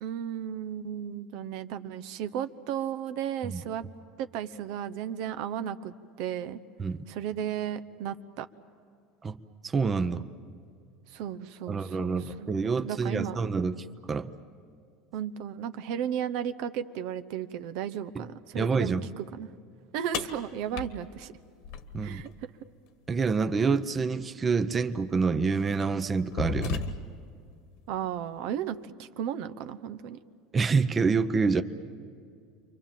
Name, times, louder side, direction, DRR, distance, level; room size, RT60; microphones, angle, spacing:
voice 1, 0.0-3.8 4.2-6.6 7.1-8.5 11.1-13.4 15.1-19.5 19.9-21.3 22.0-22.5 27.9-30.2, right 9 dB, 65° right, 12 dB, 0.8 m, -34 dB
voice 2, 9.6-10.2 11.7-14.3 18.1-18.2 18.5-19.1 21.9-22.2 23.1-26.8 30.5-31.6, right 4 dB, 20° right, 10 dB, 0.7 m, -27 dB
sound 1, 20.1-22.3 24.2-24.3 25.1-25.3 25.8-27.3, left 5 dB, 70° left, 1.5 m, -35 dB
29.5 x 24.0 x 7.4 m, 2.3 s
supercardioid pair, 135°, 0 cm